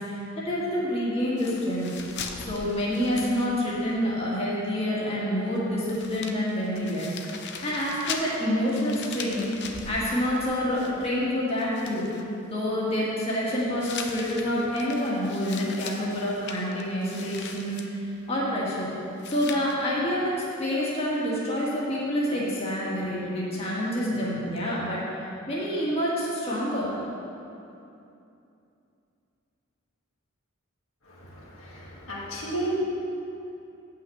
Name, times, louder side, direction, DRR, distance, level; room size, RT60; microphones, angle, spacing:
voice 1, 0.0-1.9 2.5-7.3 7.6-9.5 9.9-12.0 12.5-18.0 18.3-18.9 19.3-25.1 25.5-26.9, equal, 30° left, -6 dB, 1.8 m, -27 dB
sound 1, 1.4-4.0 4.2-4.3 5.5-5.6 5.9-11.3 11.6-12.2 13.8-17.9 19.2-19.7, left 5 dB, 55° left, 0.7 m, -40 dB
voice 2, 31.1-32.7, right 1 dB, 75° left, -6 dB, 2.1 m, -35 dB
7.9 x 5.8 x 7.8 m, 2.7 s
head